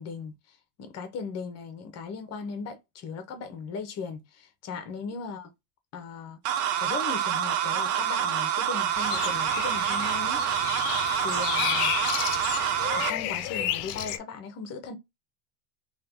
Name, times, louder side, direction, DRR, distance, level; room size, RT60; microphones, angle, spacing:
voice 1, 0.0-5.5 5.9-6.4 6.8-10.4 11.2-12.0 12.9-14.9, left 5 dB, 35° left, 0.9 m, -38 dB
sound 1, 6.5-13.1, right 10 dB, 35° right, 0.4 m, -27 dB
sound 2, 9.0-14.2, left 12 dB, 70° left, 0.6 m, -32 dB
2.8 x 2.5 x 3.6 m
supercardioid pair, 135°, 45 cm